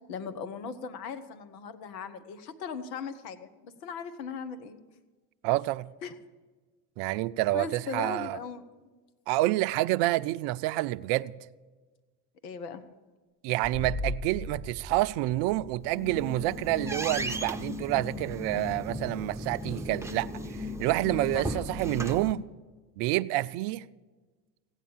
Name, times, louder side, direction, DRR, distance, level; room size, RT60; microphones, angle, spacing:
voice 1, 0.1-4.8 6.0-6.1 7.5-8.6 12.4-12.9 21.3-21.6, left 6 dB, 80° left, 1.2 m, -38 dB
voice 2, 5.4-5.9 7.0-8.4 9.3-11.3 13.4-22.5 23.0-23.8, right 17 dB, 60° right, 0.6 m, -28 dB
sound 1, 13.6-19.2, left 1 dB, 25° left, 3.2 m, -40 dB
sound 2, 15.8-22.3, left 1 dB, 5° right, 0.9 m, -36 dB
16.0 x 9.5 x 7.3 m
hypercardioid pair, 75°, 49 cm